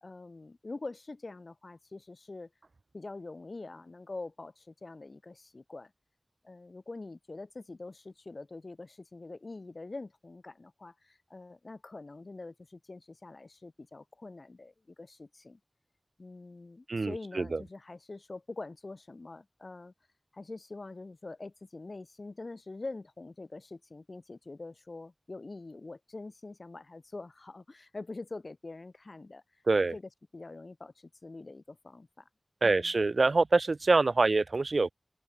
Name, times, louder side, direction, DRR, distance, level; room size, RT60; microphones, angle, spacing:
voice 1, 0.0-2.5 2.9-5.9 6.4-15.6 16.2-19.9 20.3-29.6 29.9-30.0 30.3-32.3 32.6-32.9, left 3 dB, 60° left, 1.8 m, -45 dB
voice 2, 16.9-17.6 29.7-29.9 32.6-34.9, right 3 dB, 75° right, 0.7 m, -25 dB
open air
wide cardioid pair, 65°, 0 cm